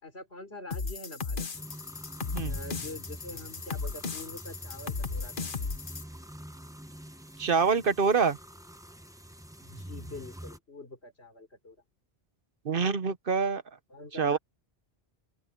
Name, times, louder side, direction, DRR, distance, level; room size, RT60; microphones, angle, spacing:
voice 1, 0.0-1.7 2.4-5.8 9.6-11.8 13.9-14.4, left 2 dB, 80° left, 4.5 m, -45 dB
sound 1, 0.7-6.0, left 4 dB, 55° left, 1.4 m, -36 dB
sound 2, 1.5-10.6, right 1 dB, 5° right, 0.9 m, -46 dB
voice 2, 7.4-8.4 12.6-13.6 14.2-14.4, right 5 dB, 60° right, 1.1 m, -25 dB
open air
omnidirectional pair, 1.1 m